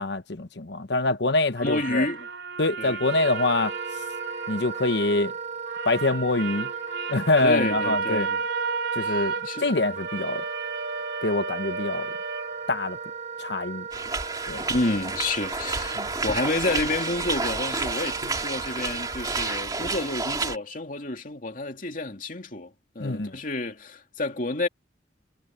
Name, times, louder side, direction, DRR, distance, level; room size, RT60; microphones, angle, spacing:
voice 1, 0.0-2.1 2.6-3.7 4.5-5.3 5.8-6.7 7.1-8.3 8.9-10.4 11.2-12.1 12.7-13.0 13.4-13.8 14.5-14.6 16.0-16.1 23.0-23.4, left 2 dB, 60° left, 1.1 m, -25 dB
voice 2, 1.6-2.3 2.8-3.0 7.4-8.4 9.0-9.7 14.7-24.7, left 2 dB, 45° left, 2.7 m, -30 dB
sound 1, 1.6-5.3 5.7-13.2, right 5 dB, 75° right, 3.9 m, -33 dB
Wind instrument woodwind instrument, 3.0-19.6, right 5 dB, 40° right, 7.4 m, -36 dB
sound 2, 13.9-20.6, right 3 dB, 20° right, 2.7 m, -30 dB
head